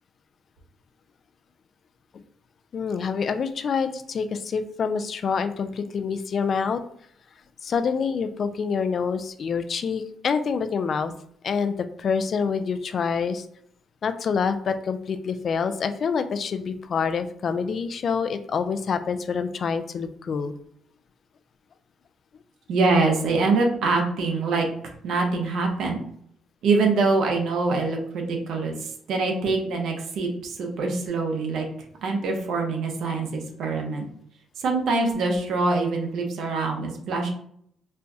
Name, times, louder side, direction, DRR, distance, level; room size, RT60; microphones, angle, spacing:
voice 1, 2.7-6.8 7.6-11.1 11.4-13.5 14.0-20.5, left 6 dB, 55° left, 10 dB, 0.3 m, -26 dB
voice 2, 22.7-24.7 25.0-26.0 26.6-31.7 32.0-34.0 34.6-37.3, right 3 dB, 75° right, 2 dB, 0.8 m, -24 dB
4.3 x 2.3 x 2.6 m, 0.66 s
cardioid pair, 90°, 0 cm